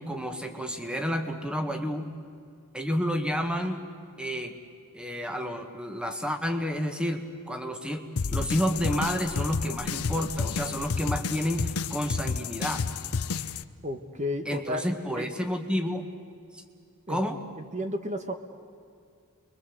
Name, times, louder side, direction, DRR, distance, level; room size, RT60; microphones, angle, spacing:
voice 1, 0.0-2.1 2.7-3.8 4.2-4.6 4.9-12.9 14.4-16.0 16.5-16.6 17.1-17.4, equal, 5° right, 6 dB, 1.7 m, -30 dB
sound 1, 8.2-13.6, left 5 dB, 85° left, 0.7 m, -30 dB
voice 2, 13.8-14.8 15.1-15.3 17.1-17.2 17.7-18.3, left 1 dB, 35° right, 7 dB, 1.3 m, -32 dB
28.5 x 22.5 x 8.0 m, 2.3 s
head